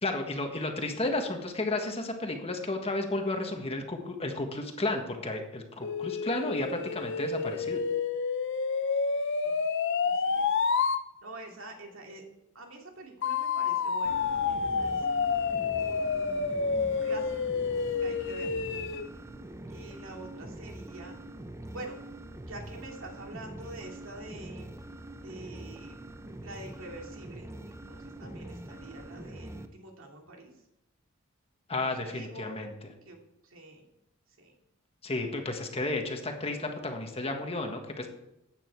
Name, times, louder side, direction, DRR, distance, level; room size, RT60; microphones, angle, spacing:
voice 1, 0.0-7.8 31.7-32.9 35.0-38.1, left 2 dB, 30° left, 4 dB, 1.5 m, -32 dB
sound 1, 5.8-11.0 13.2-19.1, left 5 dB, 60° left, 0.7 m, -29 dB
voice 2, 10.0-10.5 11.2-12.2 12.5-15.0 15.8-17.3 18.0-18.6 19.7-21.1 21.7-22.0 22.5-24.7 25.2-26.1 26.4-30.5 31.8-32.6 33.1-33.2 33.5-33.8 34.4-34.5, right 2 dB, 70° right, 1 dB, 2.6 m, -46 dB
sound 2, 14.0-29.7, right 1 dB, 15° right, 0.7 m, -44 dB
14.0 x 9.1 x 4.7 m, 0.85 s
head